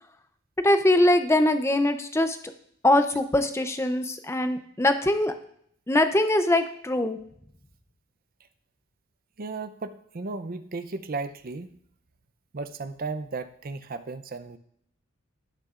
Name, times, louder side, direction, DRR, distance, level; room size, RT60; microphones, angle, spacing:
voice 1, 0.6-2.4 2.8-5.3 5.9-7.2, left 1 dB, 10° left, 8 dB, 0.5 m, -22 dB
voice 2, 9.4-11.7 12.5-14.6, right 3 dB, 40° right, 11 dB, 0.5 m, -35 dB
18.0 x 6.4 x 2.5 m, 0.68 s
head